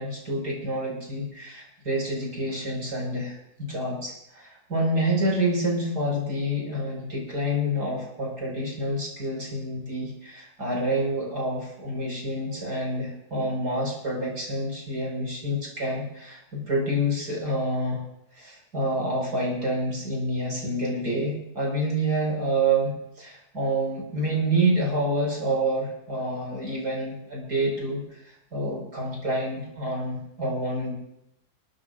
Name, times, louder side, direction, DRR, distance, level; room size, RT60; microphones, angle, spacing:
voice 1, 0.0-18.0 18.3-30.9, right 1 dB, 80° right, -2 dB, 5.8 m, -28 dB
29.0 x 13.0 x 2.6 m, 0.78 s
omnidirectional pair, 1.7 m